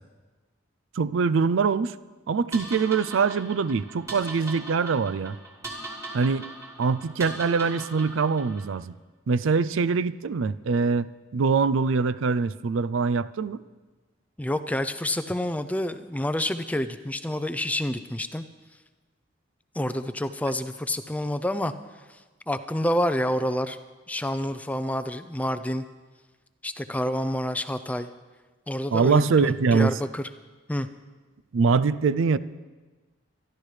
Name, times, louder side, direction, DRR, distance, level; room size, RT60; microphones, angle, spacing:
voice 1, 1.0-1.9 2.3-5.4 6.1-6.5 6.8-8.9 9.3-13.6 28.9-29.9 31.5-32.4, right 5 dB, 80° right, 15 dB, 0.4 m, -23 dB
sound 1, 2.5-8.8, right 2 dB, 15° right, 1.9 m, -40 dB
voice 2, 14.4-18.4 19.7-21.7 22.1-22.2 22.5-23.8 24.1-25.8 26.6-28.1 28.7-30.2 30.7-30.9, left 1 dB, 5° left, 11 dB, 0.4 m, -28 dB
25.5 x 12.0 x 3.3 m, 1.3 s
head